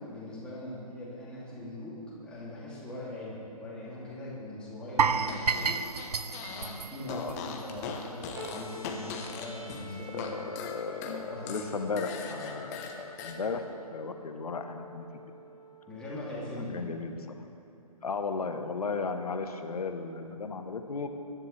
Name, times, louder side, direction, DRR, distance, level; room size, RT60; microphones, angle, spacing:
voice 1, 0.0-6.2 6.5-10.4 11.2-11.9 15.9-16.9, left 1 dB, 5° left, -9 dB, 2.7 m, -41 dB
sound 1, 5.0-8.0 8.3-8.5 8.9-9.0, right 5 dB, 85° right, 0.6 m, -30 dB
Fart, 5.2-6.8 7.0-10.3 10.6-13.4, left 6 dB, 25° left, 1.0 m, -40 dB
sound 2, 8.4-16.4, left 1 dB, 10° right, 1.8 m, -49 dB
voice 2, 10.1-15.1 16.5-17.4 18.0-21.1, left 4 dB, 70° left, 7 dB, 1.2 m, -35 dB
20.0 x 10.5 x 3.4 m, 3.0 s
figure-of-eight pair, 145°, 20 cm